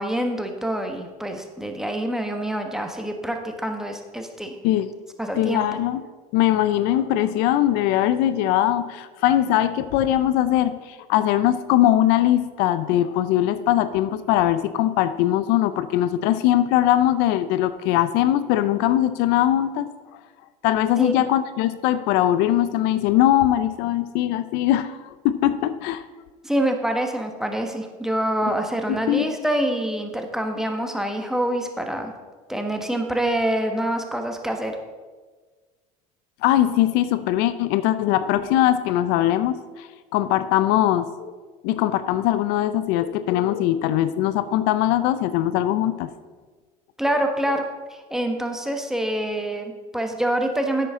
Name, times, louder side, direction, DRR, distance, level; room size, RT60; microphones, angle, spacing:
voice 1, 0.0-4.6 5.2-5.8 21.0-21.1 26.4-32.1 32.5-34.8 47.0-47.6 47.9-50.9, right 1 dB, 5° right, 4 dB, 1.3 m, -26 dB
voice 2, 5.3-6.0 6.3-19.9 20.6-26.0 28.9-29.3 36.4-41.3 41.6-46.1, left 12 dB, 70° left, 13 dB, 0.5 m, -21 dB
11.0 x 8.4 x 3.7 m, 1.4 s
supercardioid pair, 95°, 18 cm